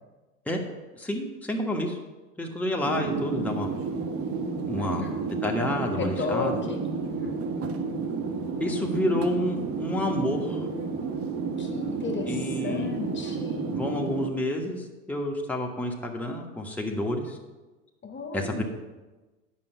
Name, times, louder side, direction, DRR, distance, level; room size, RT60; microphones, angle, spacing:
voice 1, 0.9-2.0 2.4-3.7 4.6-5.0 5.4-6.6 8.6-10.7 12.3-13.0 13.7-17.4 18.3-18.6, left 1 dB, 5° left, 0 dB, 1.3 m, -29 dB
sound 1, 2.8-14.3, right 4 dB, 35° right, 1.1 m, -31 dB
voice 2, 4.8-5.2 5.8-7.4 11.6-12.4 12.6-13.8 18.0-18.6, left 4 dB, 30° left, 3 dB, 1.2 m, -34 dB
8.9 x 5.5 x 6.7 m, 1.2 s
figure-of-eight pair, 75°, 40 cm